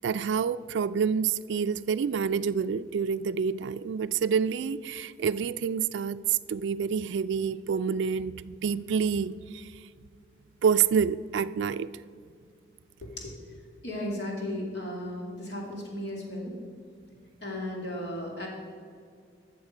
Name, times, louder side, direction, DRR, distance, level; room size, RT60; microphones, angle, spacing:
voice 1, 0.0-9.7 10.6-11.9, right 6 dB, 80° right, 0.3 m, -28 dB
voice 2, 13.8-16.6 17.4-18.5, left 1 dB, 65° left, 2.6 m, -35 dB
13.5 x 6.8 x 5.0 m
head